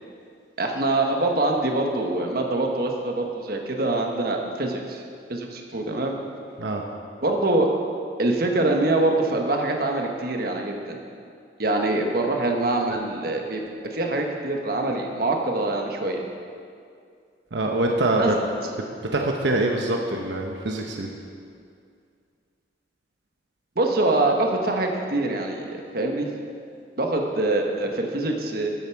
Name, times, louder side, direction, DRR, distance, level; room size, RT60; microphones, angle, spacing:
voice 1, 0.6-5.0 5.3-6.1 7.2-7.7 8.2-11.0 11.6-16.2 18.2-18.3 23.7-26.3 27.0-28.7, right 2 dB, 60° right, 2 dB, 1.3 m, -24 dB
voice 2, 17.5-18.4 19.1-21.1, right 2 dB, 85° right, 1 dB, 1.0 m, -24 dB
13.0 x 9.2 x 4.7 m, 2.3 s
head